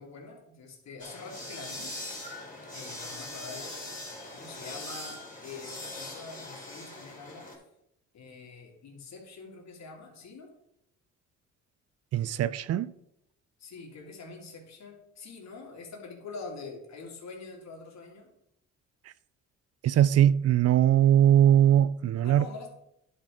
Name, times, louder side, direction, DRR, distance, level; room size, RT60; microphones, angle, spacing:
voice 1, 0.0-1.9 2.7-4.0 4.3-7.5 8.1-10.5 13.6-18.3 22.2-22.7, left 4 dB, 60° left, 2.5 m, -45 dB
sound 1, 1.0-7.6, left 2 dB, 25° left, 3.3 m, -41 dB
voice 2, 12.1-12.9 19.8-22.5, right 10 dB, 55° right, 0.4 m, -21 dB
10.5 x 4.4 x 4.9 m
cardioid pair, 90°, 30 cm